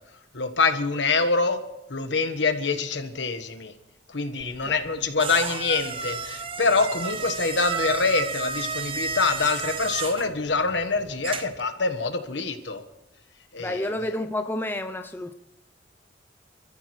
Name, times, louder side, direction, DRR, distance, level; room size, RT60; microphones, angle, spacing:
voice 1, 0.3-1.6 1.9-3.7 4.1-12.8 13.5-13.9, left 4 dB, 70° left, 7 dB, 1.4 m, -25 dB
sound 1, 4.4-11.7, right 5 dB, 30° right, 0.6 m, -33 dB
voice 2, 13.6-15.3, left 1 dB, 10° left, 6 dB, 0.6 m, -30 dB
27.5 x 14.0 x 3.2 m, 0.88 s
head